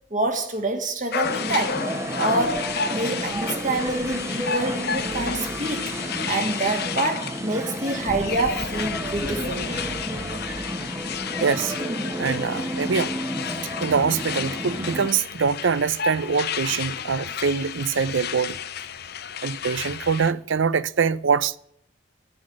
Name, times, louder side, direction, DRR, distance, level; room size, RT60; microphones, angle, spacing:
voice 1, 0.1-1.8 2.2-6.0 6.3-10.4, right 2 dB, 45° right, 2.1 m, -27 dB
sound 1, 1.1-20.3, left 7 dB, 55° left, 0.8 m, -32 dB
sound 2, 1.2-15.1, right 1 dB, 15° right, 0.9 m, -31 dB
voice 2, 11.4-11.8 12.2-13.1 13.8-18.6 19.4-21.6, right 5 dB, 80° right, 0.6 m, -24 dB
10.0 x 9.8 x 6.4 m
head